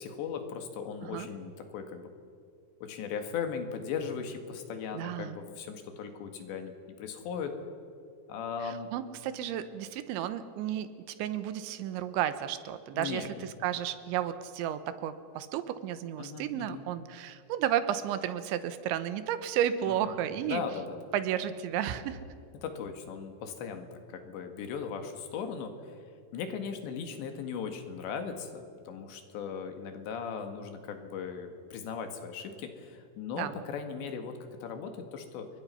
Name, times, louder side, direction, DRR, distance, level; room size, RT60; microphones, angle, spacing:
voice 1, 0.0-2.1 2.8-6.7 7.0-7.6 8.3-8.9 12.9-13.5 16.2-16.9 19.9-20.0 20.5-21.0 22.6-26.0 26.3-35.5, left 6 dB, 75° left, 6 dB, 4.0 m, -38 dB
voice 2, 4.9-5.4 8.6-20.6 21.1-22.2 33.3-33.6, right 10 dB, 85° right, 12 dB, 3.4 m, -33 dB
28.0 x 23.0 x 5.7 m, 2.4 s
omnidirectional pair, 5.2 m